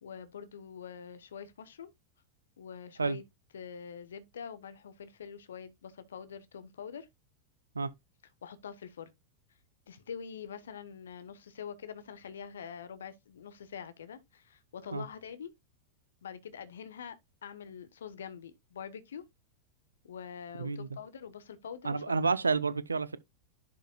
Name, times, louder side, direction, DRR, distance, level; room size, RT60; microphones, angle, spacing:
voice 1, 0.0-1.9 2.6-3.2 3.5-7.1 8.4-9.1 9.9-15.5 16.2-17.2 17.4-19.3 20.0-22.3, left 7 dB, 65° left, 1.0 m, -45 dB
voice 2, 21.8-23.2, right 4 dB, 75° right, 0.6 m, -29 dB
11.0 x 5.2 x 2.2 m
figure-of-eight pair, 90°, 0 cm